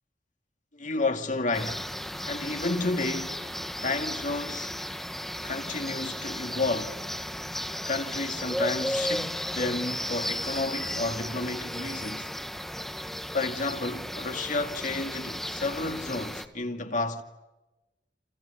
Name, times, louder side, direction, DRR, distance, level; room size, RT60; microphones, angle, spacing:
voice 1, 0.7-1.9 2.3-4.8 5.4-7.0 7.9-12.3 13.3-17.2, left 3 dB, 45° left, 2.5 m, -31 dB
sound 1, 1.5-16.5, equal, ahead, 1.6 m, -34 dB
29.0 x 28.5 x 7.1 m
head